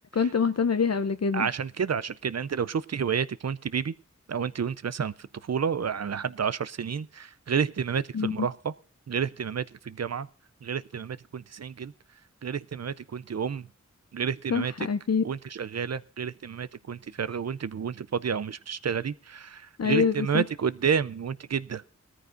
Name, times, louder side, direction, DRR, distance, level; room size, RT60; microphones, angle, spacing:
voice 1, 0.1-1.5 8.1-8.5 14.5-15.2 19.8-20.4, left 5 dB, 55° left, 9 dB, 0.6 m, -25 dB
voice 2, 1.3-3.9 4.3-8.7 9.1-10.3 10.6-11.9 12.4-13.7 14.1-14.7 15.2-21.8, right 7 dB, 60° right, 16 dB, 0.5 m, -30 dB
19.0 x 13.5 x 2.5 m, 0.41 s
wide cardioid pair, 50°, 30 cm